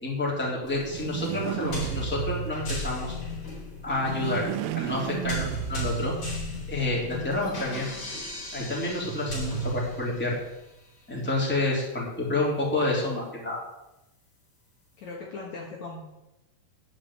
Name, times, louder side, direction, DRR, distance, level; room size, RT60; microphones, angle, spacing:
voice 1, 0.0-3.1 3.8-4.5 4.7-6.1 6.7-7.9 8.5-10.4 11.1-13.6, left 2 dB, 5° left, -5 dB, 2.9 m, -29 dB
sound 1, 0.6-10.5, right 1 dB, 40° left, 4.8 m, -35 dB
sound 2, 0.8-2.6 3.9-6.1, right 15 dB, 90° right, 2.5 m, -34 dB
voice 2, 15.0-16.0, left 3 dB, 60° left, -2 dB, 2.4 m, -38 dB
12.0 x 5.2 x 8.6 m, 0.93 s
omnidirectional pair, 4.2 m